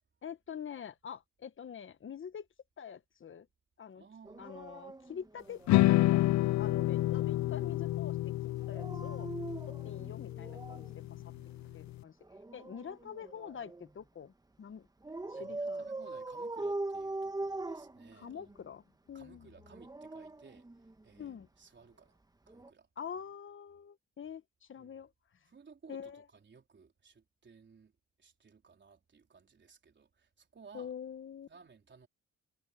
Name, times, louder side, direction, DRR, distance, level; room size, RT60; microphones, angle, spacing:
voice 1, 0.2-2.5 2.8-3.5 3.8-4.0 4.4-9.3 9.7-11.2 11.7-12.2 12.5-14.3 14.6-14.9 15.3-15.9 18.1-19.5 21.2-21.5 23.0-25.1 25.9-26.2 30.7-31.5, left 7 dB, 40° left, 1.3 m, -46 dB
voice 2, 4.0-4.5 7.1-7.5 11.3-11.9 15.3-18.5 19.1-22.2 22.5-22.9 24.8-24.9 25.5-27.9 28.2-30.9 31.5-32.1, right 5 dB, 40° right, 4.0 m, -58 dB
Dog, 4.2-6.1 8.6-11.0 12.2-13.9 15.0-18.6 19.6-21.2 22.5-22.7, right 2 dB, 15° right, 1.3 m, -42 dB
sound 1, 5.7-11.9, left 16 dB, 70° left, 0.5 m, -30 dB
cardioid pair, 90°, 30 cm